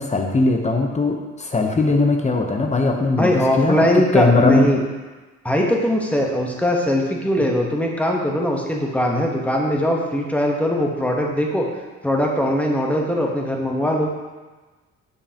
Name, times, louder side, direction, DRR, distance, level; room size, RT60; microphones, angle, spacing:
voice 1, 0.0-3.9 4.1-4.7, left 3 dB, 25° left, 3 dB, 0.8 m, -19 dB
voice 2, 3.2-4.8 5.4-11.7 12.0-14.1, equal, 5° left, 0 dB, 1.0 m, -20 dB
7.0 x 5.4 x 2.9 m, 1.3 s
cardioid pair, 90°, 30 cm